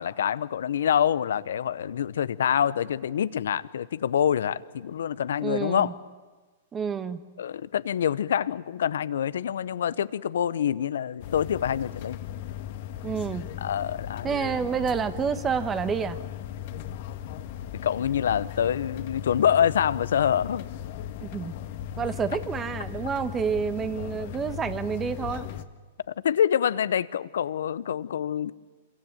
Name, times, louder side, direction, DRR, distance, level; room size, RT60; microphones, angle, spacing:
voice 1, 0.0-5.9 7.4-12.2 13.6-14.3 17.8-20.7 26.2-28.5, left 9 dB, 75° left, 17 dB, 0.9 m, -26 dB
voice 2, 5.4-5.9 6.7-7.2 13.0-13.5 14.2-16.2 21.2-21.5 22.0-25.5, right 6 dB, 20° right, 12 dB, 1.5 m, -29 dB
sound 1, 11.2-25.6, left 11 dB, 55° left, 1.6 m, -37 dB
27.5 x 23.0 x 9.2 m, 1.3 s
hypercardioid pair, 125°, 0 cm